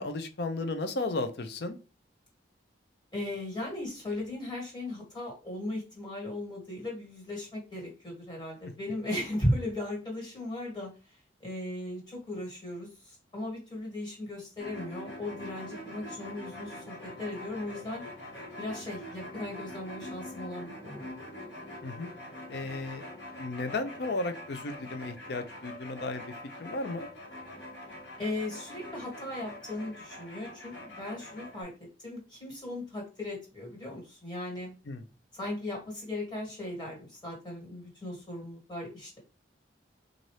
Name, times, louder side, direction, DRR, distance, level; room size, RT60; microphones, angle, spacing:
voice 1, 0.0-1.8 21.8-22.1 22.5-23.0 23.4-26.3 26.6-27.1 34.9-35.0, left 2 dB, 60° left, 8 dB, 0.5 m, -34 dB
voice 2, 3.1-10.9 11.4-18.0 18.6-21.0 28.2-31.7 32.0-34.7 35.3-39.2, left 1 dB, 25° left, -2 dB, 1.6 m, -37 dB
sound 1, 14.6-31.6, left 1 dB, 85° left, 1.4 m, -44 dB
4.0 x 2.5 x 3.2 m, 0.32 s
head